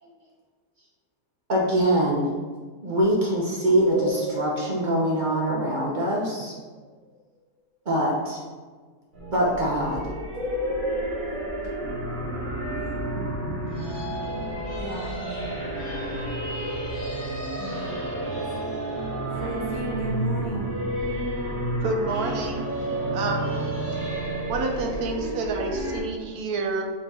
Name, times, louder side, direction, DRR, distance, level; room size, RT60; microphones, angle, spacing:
voice 1, 1.5-2.3 2.8-6.5 7.9-8.4 9.3-10.0, right 1 dB, 55° right, -4 dB, 0.5 m, -23 dB
sound 1, 3.8-6.3 10.3-12.0, left 1 dB, 65° left, 1.4 m, -32 dB
sound 2, 9.1-26.0, right 1 dB, 35° right, 1.3 m, -30 dB
voice 2, 14.8-15.6 17.6-18.0 19.4-20.7, right 1 dB, 85° left, -5 dB, 0.4 m, -35 dB
voice 3, 21.8-22.7 23.1-23.5 24.5-26.8, right 3 dB, 75° right, 4 dB, 1.1 m, -28 dB
4.9 x 2.8 x 3.5 m, 1.4 s
omnidirectional pair, 1.7 m